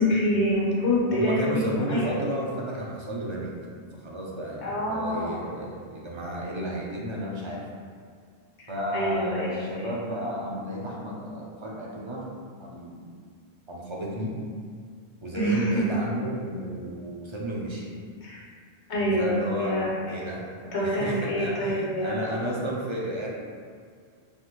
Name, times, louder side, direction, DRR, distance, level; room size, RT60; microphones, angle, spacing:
voice 1, 0.0-2.1 4.6-5.4 8.6-9.9 15.3-15.7 18.2-18.4 18.9-20.2 20.7-22.3, left 1 dB, 85° left, -6 dB, 1.4 m, -26 dB
voice 2, 1.1-3.5 4.0-7.7 8.7-12.3 12.6-13.0 13.7-14.4 15.2-17.9 19.2-23.3, right 1 dB, 35° right, -3 dB, 0.5 m, -32 dB
5.6 x 2.6 x 3.0 m, 2.1 s
omnidirectional pair, 1.1 m